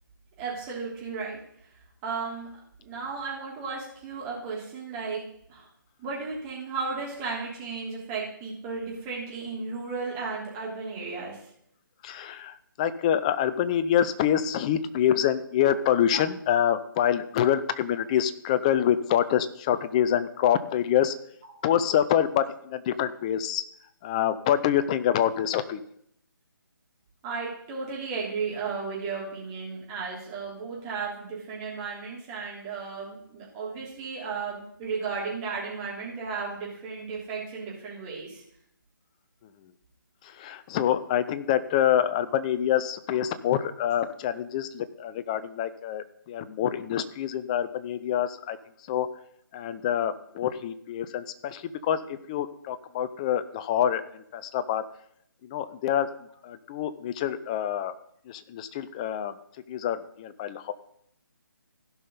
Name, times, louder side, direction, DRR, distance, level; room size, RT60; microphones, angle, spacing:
voice 1, 0.4-1.4 2.0-2.5 2.8-5.2 5.5-5.7 6.0-11.4 15.6-15.7 16.1-16.2 27.2-38.4, right 4 dB, 20° right, -4 dB, 3.3 m, -34 dB
voice 2, 12.0-21.1 21.6-23.6 24.0-25.8 40.2-48.6 48.9-49.1 49.5-54.8 55.4-56.1 56.4-57.9 58.3-59.3 59.7-60.7, left 10 dB, 20° left, 13 dB, 0.4 m, -26 dB
16.0 x 5.5 x 4.0 m, 0.70 s
figure-of-eight pair, 150°, 12 cm